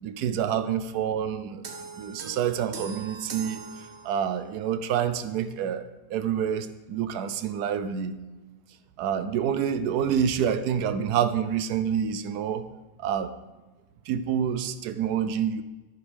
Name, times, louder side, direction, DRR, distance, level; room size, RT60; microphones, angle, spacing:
voice 1, 0.0-1.6 2.0-3.6 4.0-8.2 9.0-12.6 13.0-13.3 14.1-15.6, right 8 dB, 80° right, 11 dB, 1.2 m, -27 dB
sound 1, 1.6-4.5, right 5 dB, 50° right, 1.1 m, -41 dB
10.0 x 9.5 x 3.4 m, 1.2 s
omnidirectional pair, 1.7 m